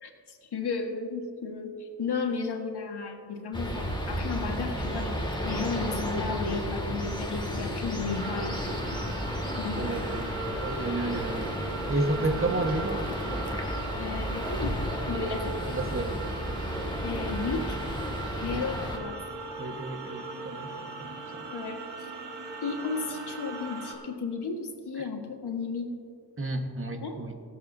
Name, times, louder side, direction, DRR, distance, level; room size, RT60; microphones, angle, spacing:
voice 1, 0.0-8.6 9.6-10.1 12.3-12.5 14.0-14.7 15.1-15.6 17.0-17.8 18.4-19.2 21.5-22.1 22.6-25.9 27.0-27.2, left 4 dB, 75° left, 3 dB, 1.6 m, -34 dB
sound 1, 3.5-19.0, equal, 10° left, 2.2 m, -33 dB
sound 2, 8.1-23.9, right 3 dB, 85° right, 1.6 m, -40 dB
voice 2, 9.8-10.3 10.6-13.0 15.1-15.3 15.7-16.3 18.5-18.9 19.6-21.5 25.0-25.1 26.4-27.4, right 2 dB, 30° right, 4 dB, 1.5 m, -32 dB
23.0 x 7.8 x 2.7 m, 2.3 s
cardioid pair, 50°, 40 cm